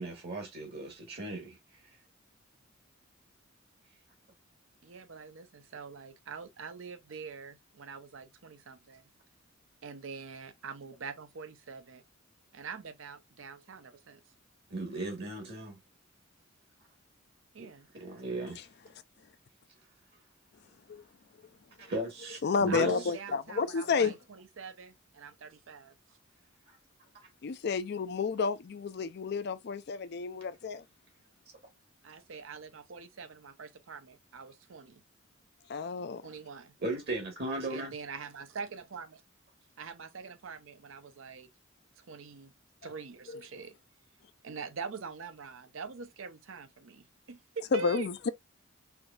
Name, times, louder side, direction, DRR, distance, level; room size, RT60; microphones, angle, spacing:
voice 1, 0.0-1.6 14.7-15.8 17.6-17.7 17.9-18.6 21.8-23.1 36.8-37.9, right 2 dB, 55° right, 1.3 m, -36 dB
voice 2, 4.8-9.0 9.8-12.0 12.5-14.2 17.5-17.9 22.7-25.9 32.0-35.0 36.2-36.7 37.7-39.2 39.8-41.5 42.0-42.5 42.8-43.8 44.4-48.1, right 5 dB, 80° right, 0.6 m, -44 dB
voice 3, 22.4-24.2 27.4-30.8 35.7-36.2 43.3-43.4 47.7-48.3, left 5 dB, 55° left, 0.4 m, -31 dB
4.6 x 2.7 x 2.3 m
head